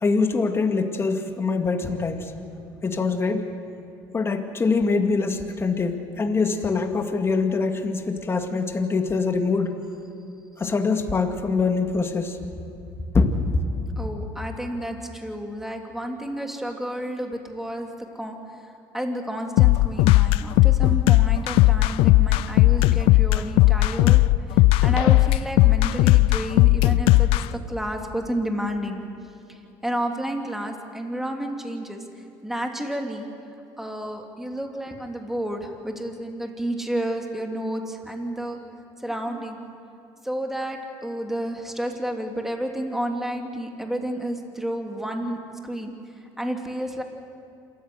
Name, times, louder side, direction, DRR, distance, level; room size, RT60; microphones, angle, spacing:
voice 1, 0.0-2.2 2.8-3.5 4.1-9.7 10.6-12.4 13.1-13.3, left 4 dB, 25° left, 5 dB, 2.2 m, -24 dB
voice 2, 14.0-24.2 24.5-29.0 29.5-33.3 33.8-38.6 39.0-39.6 40.2-45.9 46.4-47.0, right 1 dB, 5° right, 3 dB, 2.8 m, -31 dB
sound 1, 19.6-27.4, left 18 dB, 75° left, 0.5 m, -16 dB
27.0 x 14.5 x 8.0 m, 2.6 s
supercardioid pair, 90°, 9 cm